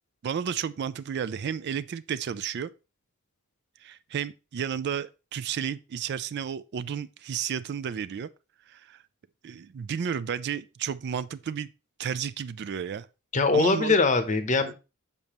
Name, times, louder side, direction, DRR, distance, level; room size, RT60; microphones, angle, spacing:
voice 1, 0.2-2.7 3.8-8.3 8.7-9.0 9.4-11.7 12.0-13.1 13.5-14.0 14.7-14.8, right 7 dB, 50° right, 0.3 m, -32 dB
voice 2, 13.3-14.7, left 3 dB, 35° left, 0.8 m, -22 dB
6.8 x 5.3 x 2.9 m
head